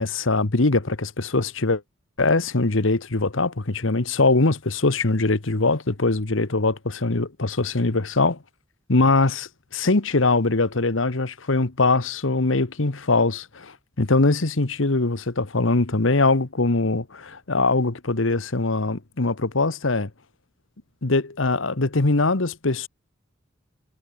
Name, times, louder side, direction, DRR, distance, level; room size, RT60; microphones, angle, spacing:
voice 1, 0.0-1.8 2.2-8.4 8.9-20.1 21.0-22.9, left 3 dB, 75° left, 1.4 m, -22 dB
head